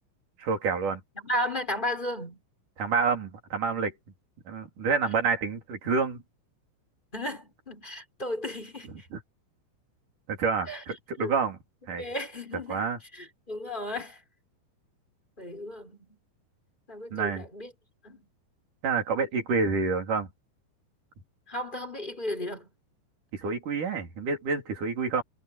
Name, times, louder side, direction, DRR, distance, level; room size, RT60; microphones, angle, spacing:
voice 1, 0.4-1.0 2.8-3.9 4.5-6.2 9.1-9.2 10.3-11.6 11.9-12.0 12.7-13.0 17.1-17.4 18.8-20.3 23.3-25.2, right 5 dB, 45° right, 5.0 m, -28 dB
voice 2, 1.2-2.4 7.1-9.1 10.7-10.8 11.2-11.3 12.0-12.8 13.1-14.2 15.4-16.2 16.9-17.7 18.0-18.3 21.5-22.7, left 1 dB, 10° left, 3.9 m, -34 dB
omnidirectional pair, 5.4 m